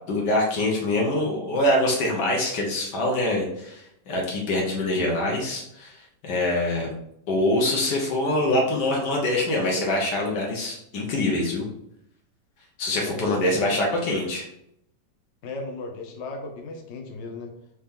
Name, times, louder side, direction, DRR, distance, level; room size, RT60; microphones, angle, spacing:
voice 1, 0.1-6.9 7.3-11.7 12.8-14.5, left 1 dB, 75° left, -1 dB, 1.6 m, -24 dB
voice 2, 12.9-13.7 15.4-17.5, left 3 dB, 60° left, 3 dB, 0.8 m, -36 dB
5.0 x 2.9 x 3.6 m, 0.77 s
omnidirectional pair, 1.8 m